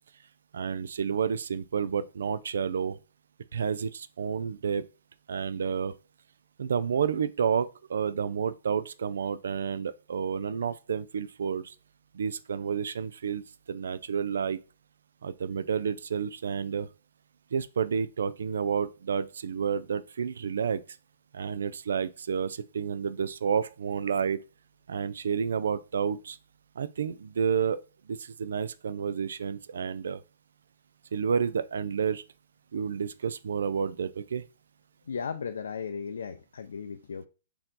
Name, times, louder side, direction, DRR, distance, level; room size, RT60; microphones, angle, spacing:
voice 1, 0.5-3.0 3.5-4.9 5.3-5.9 6.6-11.7 12.1-13.4 13.7-14.6 15.2-16.9 17.5-20.8 21.3-24.4 24.9-26.4 26.8-27.8 28.1-30.2 31.1-32.2 32.7-34.4, right 6 dB, 80° right, 0.3 m, -30 dB
voice 2, 35.1-37.3, left 6 dB, 90° left, 0.4 m, -36 dB
4.4 x 2.8 x 3.8 m
hypercardioid pair, 155°, 0 cm